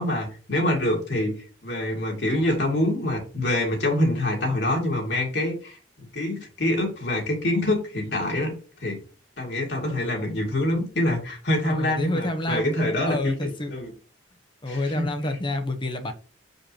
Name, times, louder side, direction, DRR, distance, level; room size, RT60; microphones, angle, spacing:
voice 1, 0.0-1.3 1.6-5.8 6.1-8.5 8.8-9.0 9.4-13.3 13.7-13.9 14.7-15.1, left 1 dB, 60° left, 0 dB, 2.5 m, -25 dB
voice 2, 11.6-12.7 13.1-13.7 14.6-16.1, left 1 dB, 25° left, 6 dB, 0.9 m, -28 dB
6.9 x 5.2 x 2.9 m, 0.38 s
head